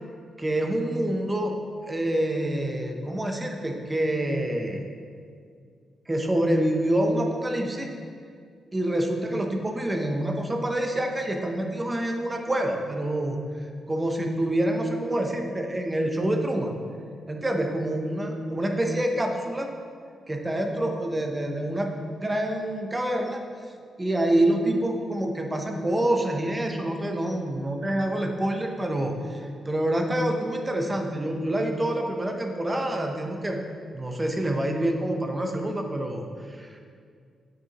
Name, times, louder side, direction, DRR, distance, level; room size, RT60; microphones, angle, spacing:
voice 1, 0.4-1.6 1.9-4.8 6.1-7.9 8.7-16.8 17.3-19.7 20.3-23.4 24.0-33.6 33.9-36.8, right 1 dB, 15° right, 2 dB, 0.6 m, -27 dB
8.1 x 6.2 x 2.9 m, 2.2 s
wide cardioid pair, 175°, 0 cm